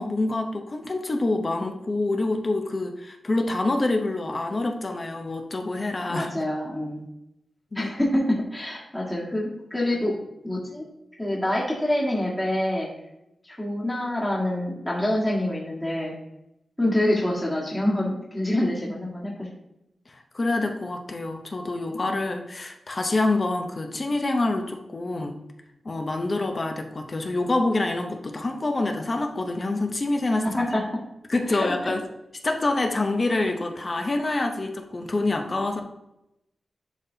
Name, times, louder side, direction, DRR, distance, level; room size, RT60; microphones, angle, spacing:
voice 1, 0.0-6.3 7.7-7.9 20.1-25.4 25.8-30.5 31.3-32.0 32.4-35.8, left 2 dB, 35° left, 5 dB, 0.8 m, -26 dB
voice 2, 6.1-7.0 7.7-10.2 10.4-10.8 11.2-12.9 13.4-16.1 16.8-19.5 30.6-30.8 31.5-31.9, left 1 dB, 10° left, -5 dB, 1.6 m, -26 dB
10.5 x 4.0 x 2.8 m, 0.87 s
wide cardioid pair, 105°, 0 cm